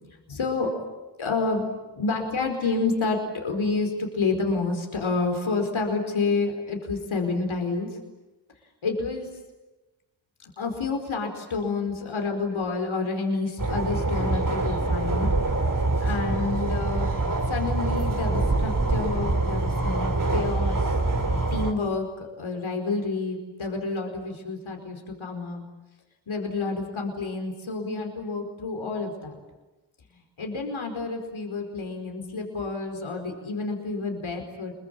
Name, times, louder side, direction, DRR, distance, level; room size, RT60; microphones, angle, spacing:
voice 1, 0.3-0.7 1.2-1.7 1.9-8.0 8.8-9.3 10.4-15.3 16.0-17.1 17.5-20.9 21.5-25.6 26.3-29.3 30.4-34.7, left 3 dB, 85° left, 3 dB, 4.8 m, -29 dB
sound 1, 13.6-21.7, right 2 dB, 40° right, 3.9 m, -25 dB
28.0 x 23.0 x 9.0 m, 1.1 s
cardioid pair, 60°, 47 cm